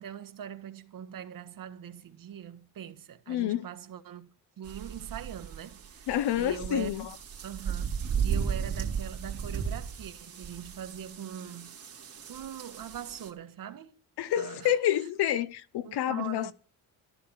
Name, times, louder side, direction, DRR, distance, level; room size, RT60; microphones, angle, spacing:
voice 1, 0.0-4.3 4.6-6.1 6.3-7.1 7.4-8.0 8.2-11.8 12.3-14.0 14.4-14.8 15.8-16.5, right 9 dB, 55° right, 1.5 m, -42 dB
voice 2, 3.3-3.6 6.1-7.1 14.2-16.5, left 11 dB, 80° left, 1.0 m, -28 dB
sound 1, 4.6-13.3, right 7 dB, 35° right, 2.9 m, -35 dB
13.0 x 11.0 x 7.1 m
cardioid pair, 145°, 39 cm